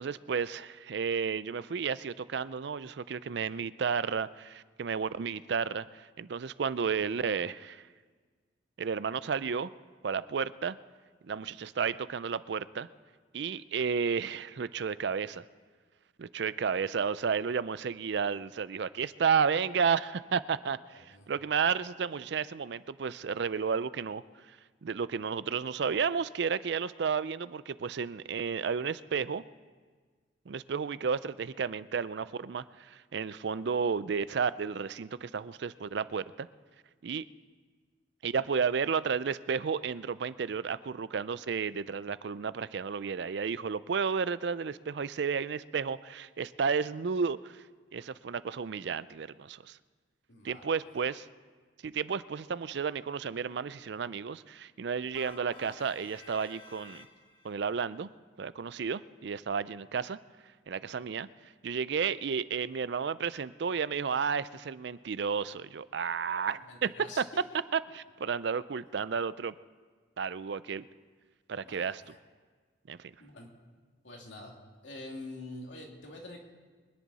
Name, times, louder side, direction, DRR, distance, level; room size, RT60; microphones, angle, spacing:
voice 1, 0.0-7.8 8.8-9.7 10.0-10.8 11.2-12.9 13.3-15.4 16.2-24.2 24.8-29.4 30.5-36.5 37.0-37.2 38.2-47.6 47.9-49.8 50.4-51.3 51.8-57.1 57.4-58.1 58.4-60.2 60.7-61.3 61.6-66.9 67.2-67.3 67.7-69.5 70.2-70.9 71.5-72.0 72.9-73.1, right 6 dB, 60° right, 16 dB, 0.4 m, -32 dB
voice 2, 20.9-21.3 50.3-50.8 66.5-67.4 71.6-72.2 73.2-73.5 74.0-74.6 74.8-76.4, left 2 dB, 75° left, 0 dB, 2.5 m, -46 dB
sound 1, 55.1-57.5, left 2 dB, 25° left, 1.3 m, -51 dB
24.0 x 10.5 x 4.1 m, 1.5 s
head